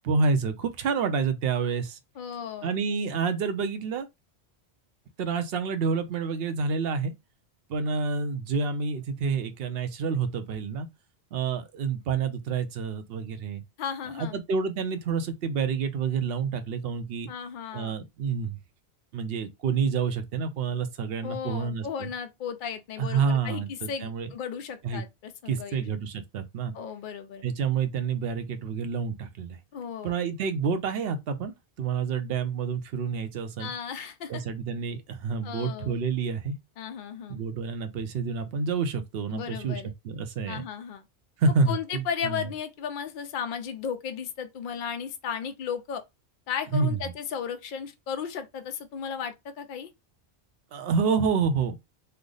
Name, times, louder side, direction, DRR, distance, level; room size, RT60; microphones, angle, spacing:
voice 1, 0.0-2.0 2.6-4.1 5.2-7.1 7.7-10.9 11.3-13.6 14.2-17.3 17.7-18.6 19.1-22.1 23.0-24.3 24.8-25.0 25.5-26.7 27.4-29.6 30.0-33.7 34.3-36.6 37.3-40.6 41.4-42.4 46.7-47.0 50.7-51.7, right 5 dB, 65° right, 0.8 m, -28 dB
voice 2, 2.2-2.8 13.8-14.4 17.3-17.9 21.2-25.9 26.7-27.5 29.7-30.1 33.6-34.4 35.4-36.0 36.8-37.4 39.3-39.9 40.5-41.0 41.7-46.0 46.5-49.9, left 7 dB, 55° left, 0.6 m, -35 dB
3.3 x 2.0 x 3.8 m
omnidirectional pair, 1.1 m